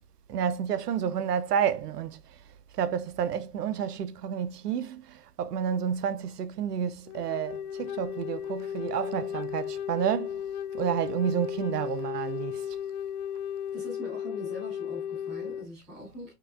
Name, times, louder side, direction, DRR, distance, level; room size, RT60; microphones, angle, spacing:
voice 1, 0.3-2.2 2.7-10.4 10.7-12.6, right 8 dB, 85° right, 0.6 m, -30 dB
Wind instrument woodwind instrument, 7.1-15.7, left 9 dB, 65° left, 0.5 m, -35 dB
voice 2, 13.7-16.3, left 1 dB, ahead, 0.3 m, -42 dB
4.6 x 2.2 x 2.3 m
hypercardioid pair, 130°, 46 cm